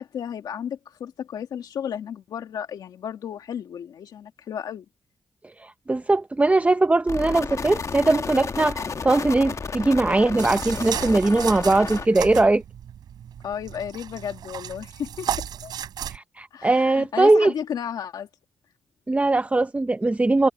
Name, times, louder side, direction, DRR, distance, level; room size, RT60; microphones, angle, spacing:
voice 1, 0.0-4.8 13.4-15.7 16.5-18.3, left 8 dB, 85° left, 2.0 m, -33 dB
voice 2, 5.6-12.6 16.1-17.5 19.1-20.5, right 2 dB, 20° right, 0.7 m, -20 dB
sound 1, 7.1-12.1, left 5 dB, 50° left, 1.4 m, -32 dB
sound 2, 10.4-16.2, right 9 dB, 85° right, 5.9 m, -34 dB
cardioid pair, 65°, 7 cm